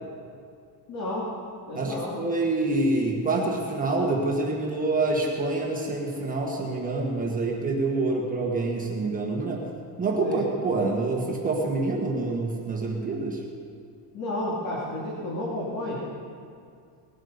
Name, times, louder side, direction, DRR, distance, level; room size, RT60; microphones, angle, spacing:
voice 1, 0.9-1.3 1.7-2.2 8.1-8.2 10.2-10.4 14.1-16.0, left 1 dB, 45° left, -6 dB, 3.0 m, -31 dB
voice 2, 1.7-9.7 10.0-13.4, right 2 dB, 20° right, -1 dB, 1.5 m, -26 dB
19.5 x 12.0 x 5.2 m, 2.3 s
cardioid pair, 175°, 44 cm